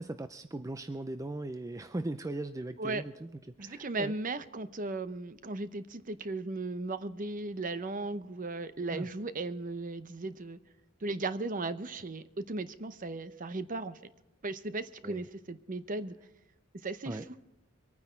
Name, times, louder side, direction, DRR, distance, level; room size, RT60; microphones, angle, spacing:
voice 1, 0.0-3.3 3.6-4.1 8.9-9.1 15.0-15.2 17.1-17.4, right 2 dB, 15° right, 10 dB, 0.4 m, -38 dB
voice 2, 3.6-10.6 11.0-14.0 14.4-16.1 16.8-17.2, right 2 dB, 40° right, 13 dB, 0.8 m, -36 dB
24.0 x 9.6 x 4.5 m, 1.0 s
head